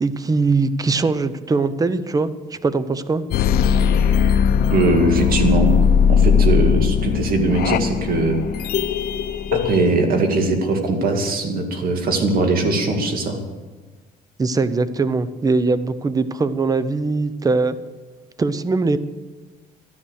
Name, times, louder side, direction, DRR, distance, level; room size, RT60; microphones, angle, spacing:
voice 1, 0.0-3.2 14.4-17.8 18.4-19.0, right 3 dB, 20° right, 14 dB, 0.7 m, -21 dB
sound 1, 3.3-9.9, left 7 dB, 65° left, 0.8 m, -18 dB
voice 2, 4.7-5.8 6.1-8.4 9.5-13.4, right 3 dB, 60° right, 4 dB, 2.2 m, -20 dB
12.5 x 10.0 x 6.4 m, 1.3 s
cardioid pair, 110°, 17 cm